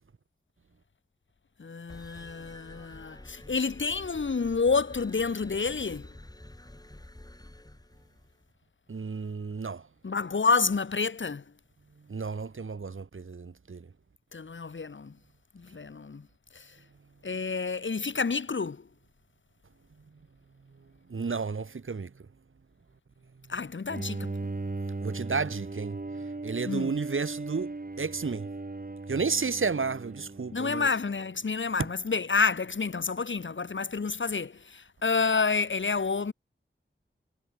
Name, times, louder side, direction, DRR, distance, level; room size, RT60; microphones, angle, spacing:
voice 1, 1.6-6.1 10.0-11.4 14.3-15.1 15.5-16.2 17.2-18.8 23.5-24.3 26.7-26.9 30.5-36.3, left 4 dB, 70° left, 1.4 m, -29 dB
sound 1, 1.9-8.5, left 1 dB, 20° left, 6.7 m, -49 dB
voice 2, 8.9-9.8 12.1-13.9 21.1-22.1 25.0-26.0 26.4-27.7 28.0-28.5 29.1-30.9, right 4 dB, 85° right, 1.9 m, -32 dB
Bowed string instrument, 23.9-31.1, right 3 dB, 45° right, 3.5 m, -37 dB
wide cardioid pair, 70°, 20 cm